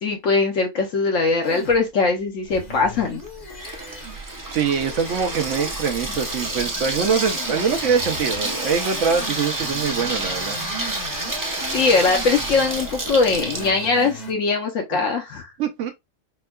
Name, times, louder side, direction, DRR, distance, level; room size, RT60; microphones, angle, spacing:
voice 1, 0.0-3.2 3.6-3.8 11.3-11.4 11.7-15.5, left 4 dB, 70° left, 1.1 m, -21 dB
sound 1, 1.4-14.3, left 1 dB, 35° left, 0.9 m, -38 dB
Water tap faucet / Sink (filling or washing), 2.5-13.7, right 2 dB, 20° right, 0.5 m, -29 dB
voice 2, 4.5-10.6 15.6-15.9, right 6 dB, 70° right, 0.9 m, -23 dB
4.4 x 2.2 x 2.2 m
omnidirectional pair, 1.4 m